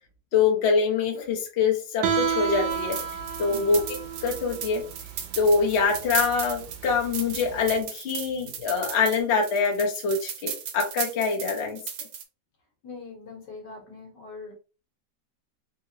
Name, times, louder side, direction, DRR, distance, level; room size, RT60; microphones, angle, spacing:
voice 1, 0.3-3.0 3.4-3.8 4.2-4.8 5.4-11.8, left 5 dB, 50° left, 1 dB, 0.8 m, -24 dB
Guitar, 2.0-7.7, right 7 dB, 90° right, 1.4 m, -31 dB
sound 1, 2.7-12.2, right 8 dB, 75° right, 1.2 m, -36 dB
voice 2, 12.8-14.5, left 4 dB, 75° left, 2 dB, 1.6 m, -42 dB
3.7 x 2.8 x 2.8 m, 0.34 s
omnidirectional pair, 2.0 m